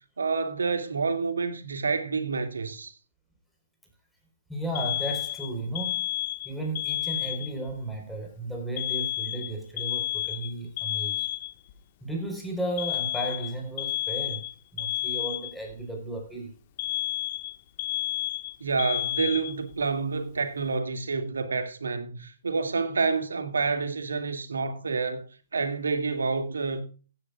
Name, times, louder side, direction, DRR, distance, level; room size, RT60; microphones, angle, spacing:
voice 1, 0.2-2.9 18.6-26.8, right 4 dB, 80° right, 2.3 m, -28 dB
voice 2, 4.5-6.0 6.4-11.3 12.0-14.5 14.7-16.5, right 1 dB, ahead, 4.3 m, -34 dB
Alarm, 4.8-7.7 8.8-11.7 12.8-15.8 16.8-19.8, left 14 dB, 45° left, 1.5 m, -31 dB
16.0 x 10.0 x 2.4 m
hypercardioid pair, 135°, 0 cm